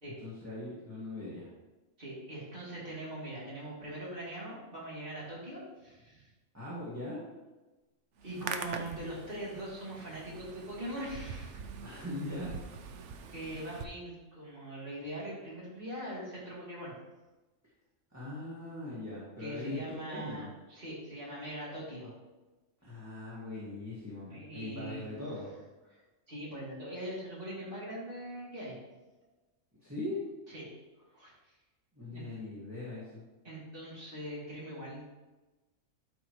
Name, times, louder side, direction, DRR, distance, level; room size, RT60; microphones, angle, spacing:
voice 1, 0.2-1.5 6.5-7.2 11.8-12.5 18.1-20.5 22.8-25.5 29.8-30.2 32.0-33.2, left 2 dB, 10° right, -9 dB, 1.8 m, -40 dB
voice 2, 2.0-6.3 8.2-11.6 13.3-16.9 19.4-22.1 24.3-25.1 25.9-26.0 26.3-28.8 30.5-30.7 31.1-31.3 32.1-32.2 33.4-35.0, right 1 dB, 40° right, -7 dB, 3.1 m, -41 dB
Hands, 8.2-13.8, right 6 dB, 65° right, 0.9 m, -43 dB
12.5 x 5.2 x 3.1 m, 1.1 s
omnidirectional pair, 1.4 m